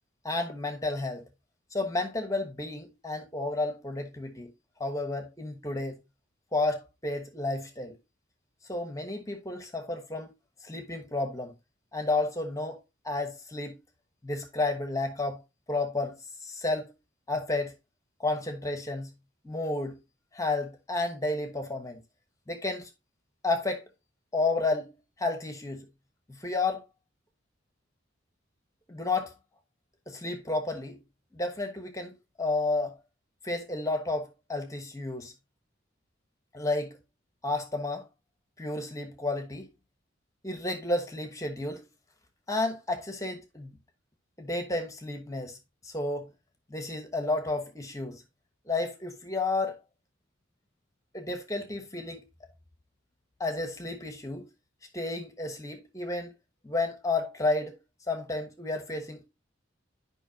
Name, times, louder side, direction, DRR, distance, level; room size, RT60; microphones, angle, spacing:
voice 1, 0.2-1.2 1.7-4.5 4.8-5.9 6.5-8.0 8.7-10.3 10.6-11.5 11.9-12.8 13.0-13.8 14.2-15.4 15.7-16.2 16.4-16.9 17.3-17.7 18.2-19.1 19.4-20.0 20.3-22.0 22.5-22.9 23.4-23.8 24.3-24.9 25.2-25.9 26.4-26.8 28.9-29.3 30.1-31.0 31.3-32.9 33.4-35.3 36.5-36.9 37.4-38.0 38.6-39.7 40.4-41.8 42.5-43.7 44.4-45.6 45.8-46.3 46.7-48.2 48.7-49.8 51.1-52.2 53.4-54.5 54.9-56.3 56.6-57.7 58.1-59.3, left 2 dB, 15° left, 1.1 m, -31 dB
10.0 x 5.4 x 2.8 m
head